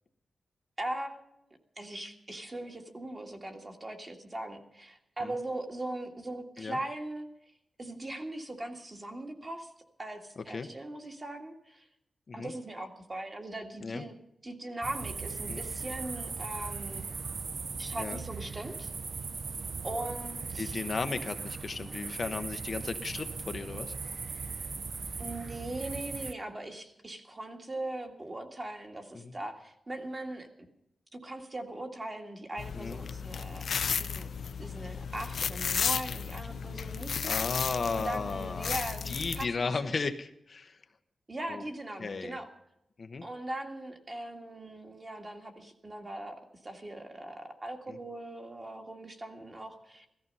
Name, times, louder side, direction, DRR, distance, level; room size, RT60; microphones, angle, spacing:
voice 1, 0.8-1.4 1.8-7.3 7.8-9.7 10.0-11.9 12.3-14.1 14.4-17.0 17.8-18.9 19.8-20.8 25.2-30.5 31.1-33.7 34.0-34.3 34.6-37.4 37.9-39.5 39.8-39.9 41.3-42.5 43.2-50.0, right 1 dB, 25° right, 3 dB, 2.0 m, -40 dB
voice 2, 10.4-10.7 12.3-12.5 13.8-14.0 15.5-15.6 18.0-18.2 20.6-23.9 29.1-29.3 32.7-33.0 37.2-38.8 39.0-40.8 41.5-41.6 42.0-42.4 43.0-43.3, left 4 dB, 40° left, 8 dB, 0.8 m, -35 dB
sound 1, 14.8-26.3, right 4 dB, 40° right, 0.5 m, -38 dB
sound 2, 32.6-39.4, left 6 dB, 70° left, 0.6 m, -34 dB
17.0 x 14.0 x 5.5 m, 0.80 s
wide cardioid pair, 165°, 0 cm